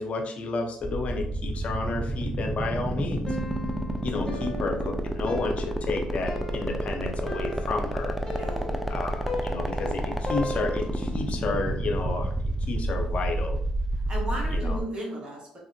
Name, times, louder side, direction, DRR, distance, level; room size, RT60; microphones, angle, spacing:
voice 1, 0.0-3.4 4.0-8.2 8.9-12.3 12.7-13.6 14.5-14.8, left 3 dB, 55° left, 4 dB, 0.6 m, -31 dB
sound 1, 0.8-14.8, right 1 dB, 5° right, 0.4 m, -29 dB
Piano, 3.3-11.1, left 2 dB, 30° left, 0.9 m, -38 dB
voice 2, 8.3-8.9 14.1-15.6, equal, 40° right, -2 dB, 1.2 m, -35 dB
3.4 x 2.0 x 2.6 m, 0.62 s
supercardioid pair, 65°, 3 cm